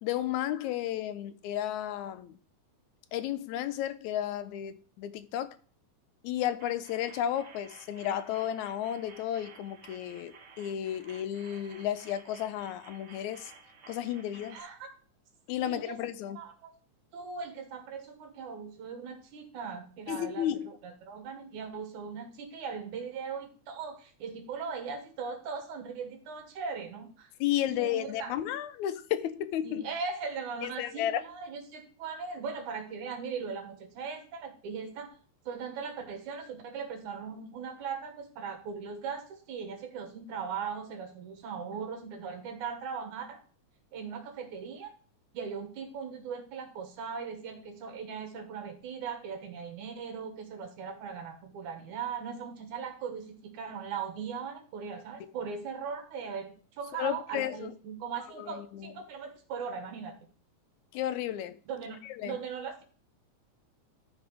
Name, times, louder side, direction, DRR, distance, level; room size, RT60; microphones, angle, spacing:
voice 1, 0.0-2.3 3.1-5.6 6.2-13.5 13.9-14.6 15.5-16.4 20.1-20.7 27.4-29.9 30.6-31.2 57.0-57.7 58.4-58.9 60.9-61.6 62.0-62.4, left 11 dB, 80° left, 2.0 m, -33 dB
sound 1, 6.6-14.6, right 4 dB, 50° right, 2.0 m, -54 dB
voice 2, 14.5-14.9 15.6-16.0 16.3-16.7 17.1-27.3 27.6-28.3 29.6-35.1 35.5-43.4 43.9-44.9 45.3-60.1 61.7-62.8, right 6 dB, 80° right, 3.1 m, -39 dB
13.0 x 4.6 x 4.9 m
omnidirectional pair, 3.4 m